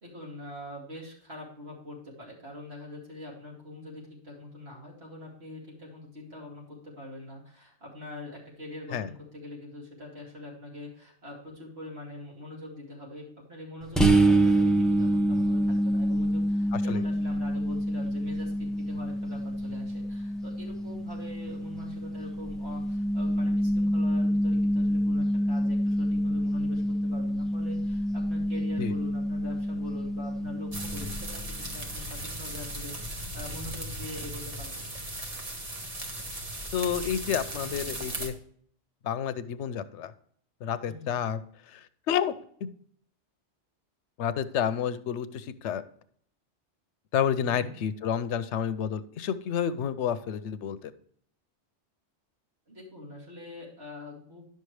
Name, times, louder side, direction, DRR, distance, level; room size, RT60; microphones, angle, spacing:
voice 1, 0.0-35.0 40.8-41.1 47.4-47.8 52.7-54.4, left 1 dB, 65° right, -4 dB, 2.8 m, -44 dB
sound 1, 14.0-31.5, right 1 dB, ahead, 0.6 m, -27 dB
voice 2, 16.7-17.0 28.8-28.9 36.7-38.3 39.0-40.1 40.6-41.4 41.7-42.3 42.6-42.7 44.2-45.8 47.1-50.9, left 8 dB, 90° left, 13 dB, 0.9 m, -30 dB
sound 2, 30.7-38.3, right 1 dB, 35° right, 1.2 m, -37 dB
10.5 x 6.6 x 3.2 m, 0.62 s
omnidirectional pair, 1.2 m